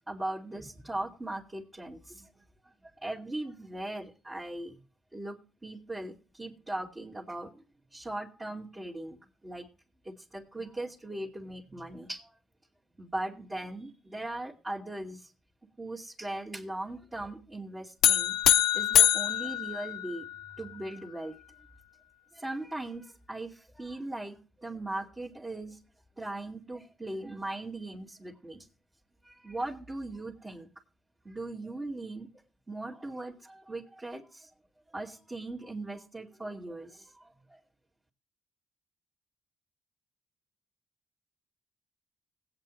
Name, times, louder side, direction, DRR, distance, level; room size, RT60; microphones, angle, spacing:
voice 1, 0.1-2.4 3.0-4.8 5.1-5.4 5.6-7.6 7.9-9.7 10.0-12.3 13.0-15.3 15.8-20.2 20.6-21.3 22.3-25.8 26.2-28.7 29.2-30.7 31.2-32.3 32.7-34.5 34.9-37.3, right 2 dB, 20° right, -6 dB, 2.3 m, -39 dB
sound 1, 18.0-20.5, left 11 dB, 80° left, 0.8 m, -24 dB
19.5 x 8.8 x 3.1 m, 0.35 s
cardioid pair, 90°, 0 cm